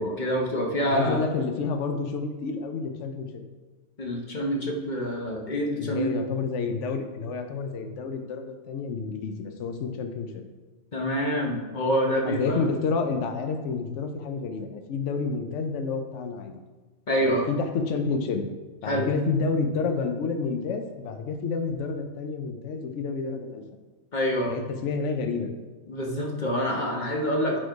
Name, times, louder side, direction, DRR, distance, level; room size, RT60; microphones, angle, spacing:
voice 1, 0.0-1.2 4.0-6.2 10.9-12.6 17.1-17.5 18.8-19.1 24.1-24.6 25.9-27.6, equal, 40° left, 0 dB, 1.0 m, -26 dB
voice 2, 0.8-3.4 5.7-10.4 12.2-16.5 17.2-18.4 18.8-23.6 24.5-25.5, left 4 dB, 65° left, 6 dB, 1.0 m, -29 dB
7.6 x 4.4 x 4.6 m, 1.2 s
omnidirectional pair, 1.4 m